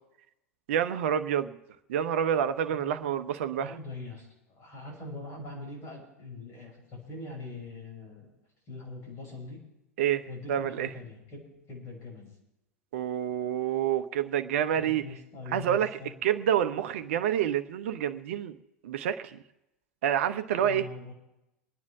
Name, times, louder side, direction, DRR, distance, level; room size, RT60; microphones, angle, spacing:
voice 1, 0.7-1.6 1.9-3.7 10.0-10.2 10.5-10.9 12.9-15.0 15.5-15.9 16.2-18.5 18.8-19.4 20.0-20.8, right 9 dB, 60° right, 11 dB, 0.9 m, -28 dB
voice 2, 3.6-8.3 8.7-9.6 10.3-12.3 14.8-16.1 20.5-21.1, left 2 dB, 35° left, -1 dB, 6.5 m, -42 dB
26.5 x 9.7 x 3.5 m, 0.89 s
figure-of-eight pair, 85°, 8 cm